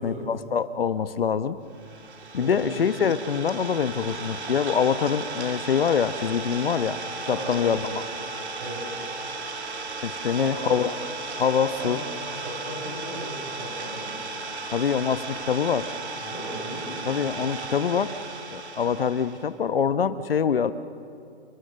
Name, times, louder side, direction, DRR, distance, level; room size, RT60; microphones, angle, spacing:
voice 1, 0.0-1.6 2.3-7.0 7.3-8.0 10.0-10.9 11.4-12.0 14.7-15.9 17.1-18.2 18.5-20.7, left 7 dB, 60° left, 13 dB, 1.0 m, -25 dB
Idling, 1.7-19.5, right 3 dB, 85° right, 3.6 m, -35 dB
voice 2, 2.3-2.8 3.9-4.1 7.2-7.8 8.6-8.9 10.4-10.8 11.6-12.1 12.4-14.1 16.2-17.1, right 1 dB, 35° right, -2 dB, 6.3 m, -36 dB
29.5 x 25.0 x 6.5 m, 2.5 s
hypercardioid pair, 175°, 32 cm